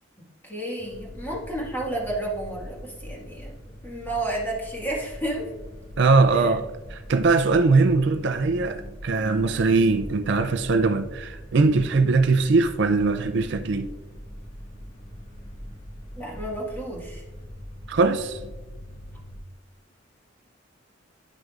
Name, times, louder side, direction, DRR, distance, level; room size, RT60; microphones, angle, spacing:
voice 1, 0.2-3.5 3.8-5.5 6.3-6.5 16.2-17.2, right 1 dB, 10° left, 1.8 m, -31 dB
sound 1, 0.8-19.4, equal, 45° left, 2.0 m, -42 dB
voice 2, 6.0-13.9 17.9-18.5, right 3 dB, 65° right, 0.4 m, -21 dB
10.5 x 6.2 x 2.5 m
head